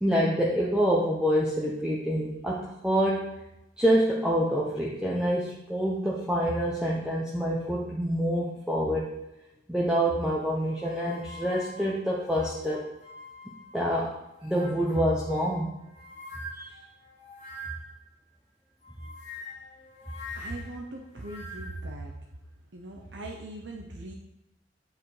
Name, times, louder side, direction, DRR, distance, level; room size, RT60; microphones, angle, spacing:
voice 1, 0.0-3.3 3.8-9.1 9.7-12.9 13.5-14.1 14.4-15.7 16.5-16.7, equal, 5° right, -5 dB, 0.8 m, -26 dB
sound 1, 10.6-13.9 14.3-18.0 18.8-21.9, left 1 dB, 40° left, 1.7 m, -45 dB
voice 2, 20.4-22.1 22.7-24.1, right 2 dB, 70° right, 0 dB, 0.8 m, -39 dB
8.1 x 4.7 x 4.9 m, 0.91 s
head